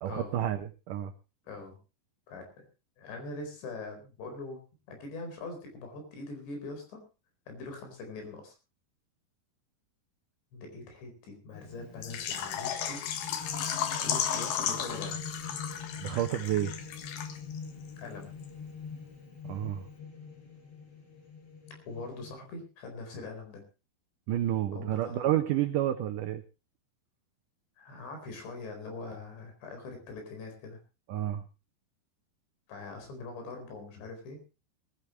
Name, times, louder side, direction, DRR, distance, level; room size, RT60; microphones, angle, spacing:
voice 1, 0.0-1.1 16.0-16.7 19.4-19.8 24.3-26.4 31.1-31.4, right 12 dB, 85° right, 9 dB, 1.8 m, -30 dB
voice 2, 1.5-1.8 2.3-2.7 3.0-4.6 4.9-7.0 7.5-8.5 10.5-13.0 14.0-15.2 18.0-18.3 21.9-23.6 24.7-25.3 27.8-30.8 32.7-34.4, left 3 dB, 85° left, 5 dB, 6.6 m, -42 dB
sound 1, 11.5-22.3, left 5 dB, 40° left, 5.5 m, -44 dB
Water / Liquid, 12.0-17.6 17.9-18.0 18.4-18.5, left 8 dB, 70° left, 3.2 m, -34 dB
20.5 x 14.5 x 3.1 m, 0.31 s
omnidirectional pair, 4.9 m